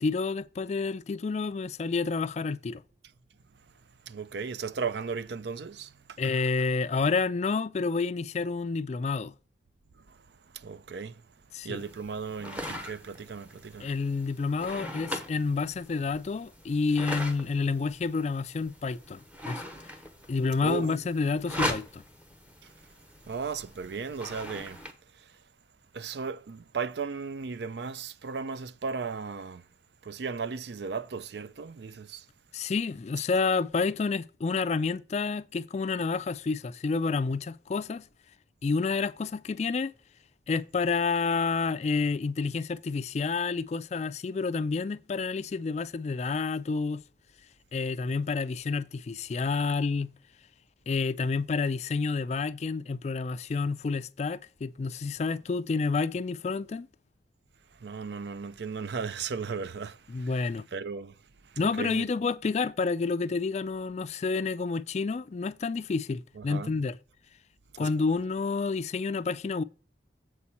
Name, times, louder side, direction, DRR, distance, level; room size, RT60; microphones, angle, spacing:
voice 1, 0.0-2.8 6.2-9.3 11.5-11.8 13.8-19.6 20.3-22.0 32.5-38.1 38.6-39.9 40.5-47.0 47.7-50.1 50.9-56.9 60.1-60.7 61.6-67.0 67.8-69.6, left 4 dB, 40° left, 0.3 m, -29 dB
voice 2, 4.1-6.2 10.1-10.2 10.5-11.2 11.6-13.9 20.6-20.9 23.3-24.8 25.9-29.6 30.0-32.2 57.8-60.3 60.7-61.1 61.6-62.1 66.4-66.7 67.8-67.9, right 5 dB, 70° right, 0.5 m, -36 dB
sound 1, 11.7-24.9, equal, 10° right, 1.0 m, -40 dB
7.7 x 4.2 x 5.8 m
head